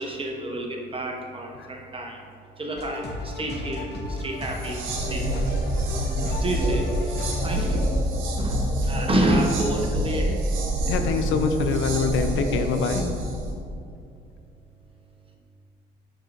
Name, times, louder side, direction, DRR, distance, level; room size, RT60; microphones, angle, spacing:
voice 1, 0.0-2.2 2.6-5.5 6.4-7.9 8.2-10.5 13.2-13.3, right 1 dB, 25° right, 1 dB, 0.9 m, -29 dB
sound 1, 2.8-7.8, left 2 dB, 60° left, 0.9 m, -34 dB
sound 2, 4.5-13.5, right 1 dB, 85° right, 1.0 m, -27 dB
voice 2, 10.9-13.1, left 4 dB, 80° left, 7 dB, 0.5 m, -25 dB
6.4 x 6.4 x 2.6 m, 2.3 s
cardioid pair, 90°, 20 cm